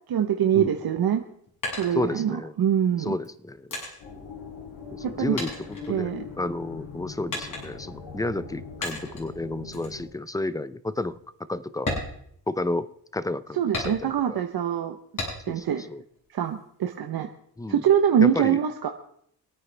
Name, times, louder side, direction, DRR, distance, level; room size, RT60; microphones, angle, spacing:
voice 1, 0.1-1.2 1.8-3.1 5.2-5.4 5.9-6.2 13.5-14.9 15.5-15.9 16.3-17.3 17.7-18.9, right 9 dB, 65° right, 5 dB, 1.1 m, -24 dB
sound 1, 1.1-2.6 3.2-5.1 5.4-6.5 7.3-8.0 8.8-9.3 9.7-10.0 10.4-10.5 11.0-11.1 11.7-12.9 13.7-14.4 15.2-15.7 16.1-17.0, left 2 dB, 50° left, 6.7 m, -35 dB
voice 2, 1.9-2.5 3.0-3.7 4.9-6.1 6.4-11.2 11.5-12.0 12.5-14.4 15.5-16.0 17.6-17.8 18.2-18.6, left 2 dB, 10° left, 15 dB, 0.6 m, -31 dB
sound 2, 4.0-10.1, left 5 dB, 80° left, 3.9 m, -41 dB
26.0 x 9.2 x 3.4 m, 0.66 s
cardioid pair, 105°, 40 cm